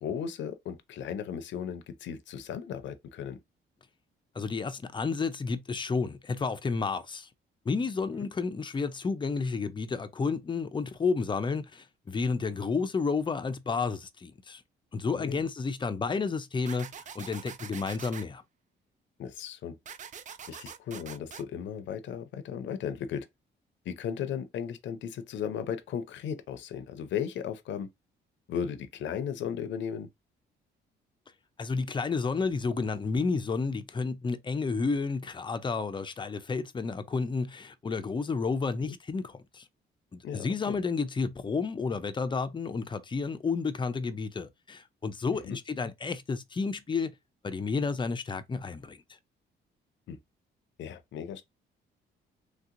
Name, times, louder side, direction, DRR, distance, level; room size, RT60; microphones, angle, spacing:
voice 1, 0.0-3.4 8.2-8.3 15.1-15.4 19.2-19.8 20.5-23.3 23.9-27.9 28.5-30.1 38.8-39.0 40.2-40.8 45.3-45.6 50.1-50.2 50.8-51.4, left 8 dB, 70° left, 0.6 m, -36 dB
voice 2, 4.3-7.3 7.7-14.6 14.9-16.9 17.1-18.4 31.6-39.6 40.1-47.1 47.4-49.0, left 4 dB, 25° left, 0.5 m, -31 dB
sound 1, 16.7-18.2 19.9-21.4, right 7 dB, 40° right, 0.4 m, -44 dB
3.2 x 2.8 x 2.5 m
cardioid pair, 90°, 20 cm